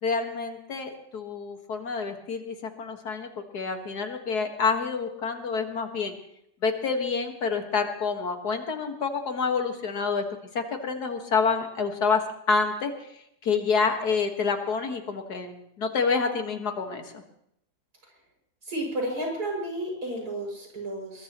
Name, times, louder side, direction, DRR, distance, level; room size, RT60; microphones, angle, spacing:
voice 1, 0.0-6.1 6.6-10.2 10.5-12.2 12.5-12.9 13.4-17.0, left 5 dB, 80° left, 5 dB, 2.3 m, -28 dB
voice 2, 18.6-21.2, right 1 dB, 75° right, -1 dB, 7.1 m, -32 dB
22.5 x 21.0 x 3.1 m, 0.76 s
omnidirectional pair, 1.7 m